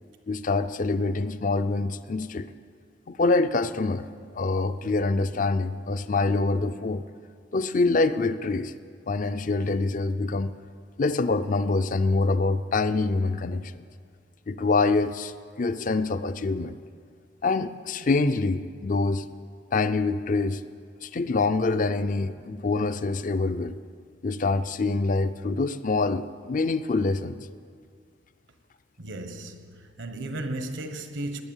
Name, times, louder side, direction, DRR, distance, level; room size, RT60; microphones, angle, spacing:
voice 1, 0.3-2.5 3.1-4.0 4.3-7.0 7.5-8.7 9.1-10.5 11.0-13.8 14.5-15.3 15.6-16.8 17.4-19.2 19.7-20.6 21.0-23.8 24.2-27.5, left 3 dB, 45° left, 0.5 m, -25 dB
voice 2, 29.0-31.4, right 1 dB, 80° right, 1.3 m, -35 dB
19.0 x 9.9 x 7.3 m
head